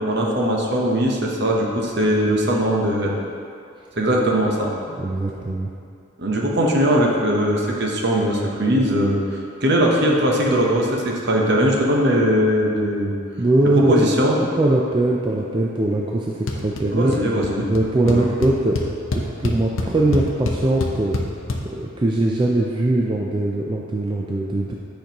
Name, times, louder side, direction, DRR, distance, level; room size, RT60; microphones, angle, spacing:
voice 1, 0.0-3.1 4.0-4.7 5.4-5.5 6.2-13.1 13.8-14.4 16.9-17.7 18.0-18.3, equal, 55° right, -1 dB, 0.9 m, -20 dB
voice 2, 4.9-5.7 13.4-14.0 14.4-17.2 17.7-18.8 19.1-21.2 21.6-24.7, right 2 dB, 25° right, -2 dB, 0.3 m, -21 dB
sound 1, 16.5-16.8 17.1-17.5 17.8-17.9 18.1-21.6, left 2 dB, 75° left, 0.7 m, -25 dB
8.7 x 5.2 x 2.9 m, 2.4 s
head